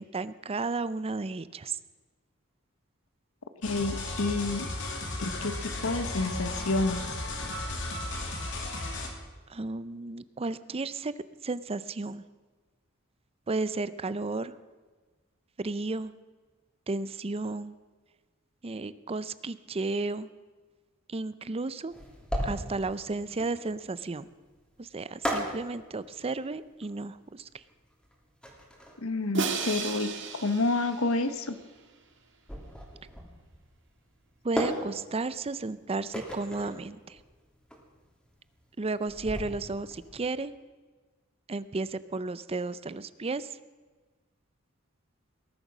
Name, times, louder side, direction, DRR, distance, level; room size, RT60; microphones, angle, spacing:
voice 1, 0.0-1.8 9.5-11.1 11.4-12.2 13.5-14.5 15.6-16.1 16.9-17.7 18.6-20.3 21.1-22.0 22.4-24.3 24.8-27.6 34.4-37.2 38.8-40.5 41.5-43.6, right 3 dB, 30° right, 16 dB, 0.5 m, -33 dB
voice 2, 3.6-4.7 5.2-7.0 29.0-31.6, left 2 dB, 80° left, 11 dB, 1.1 m, -29 dB
sound 1, 3.6-9.1, left 2 dB, 60° left, 2.7 m, -35 dB
sound 2, 21.9-40.2, equal, 5° left, 3.0 m, -38 dB
Crash cymbal, 29.3-31.6, right 4 dB, 60° right, 1.8 m, -34 dB
19.5 x 11.5 x 6.1 m, 1.4 s
head